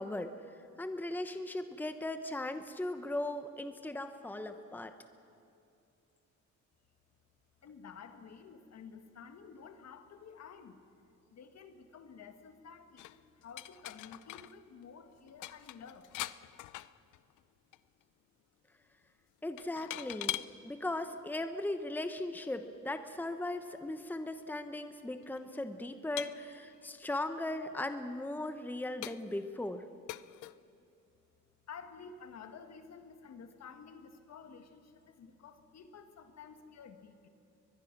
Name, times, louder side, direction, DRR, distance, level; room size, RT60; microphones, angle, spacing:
voice 1, 0.0-5.0 19.4-20.4 20.6-29.8, left 1 dB, 5° left, 9 dB, 1.1 m, -38 dB
voice 2, 7.6-10.8 11.3-16.1 31.7-37.3, left 6 dB, 60° left, 7 dB, 1.9 m, -52 dB
sound 1, 13.0-14.6 14.8-14.9 15.2-17.4 17.7-18.0 19.6-20.5 21.4-21.5 24.0-24.1 24.3-24.4 25.2-25.4 26.2-27.1 27.7-27.8 28.4-28.5 29.0-29.5 30.1-30.6, left 16 dB, 85° left, 0.6 m, -43 dB
23.0 x 21.5 x 6.1 m, 2.6 s
cardioid pair, 90°, 30 cm